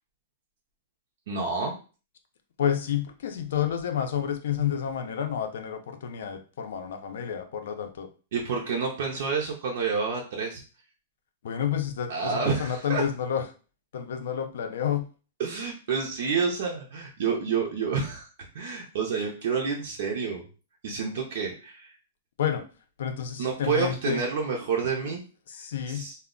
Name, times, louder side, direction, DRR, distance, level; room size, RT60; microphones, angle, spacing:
voice 1, 1.3-1.7 8.3-10.6 12.1-13.0 15.4-20.5 20.8-21.9 23.4-25.2 25.9-26.2, right 5 dB, 55° right, 0 dB, 0.5 m, -29 dB
voice 2, 2.6-8.1 11.4-13.4 13.9-15.0 22.4-22.6 23.0-24.2 25.0-25.1 25.5-26.1, left 9 dB, 65° left, 7 dB, 0.4 m, -30 dB
2.2 x 2.0 x 3.6 m, 0.36 s
supercardioid pair, 175°, 0 cm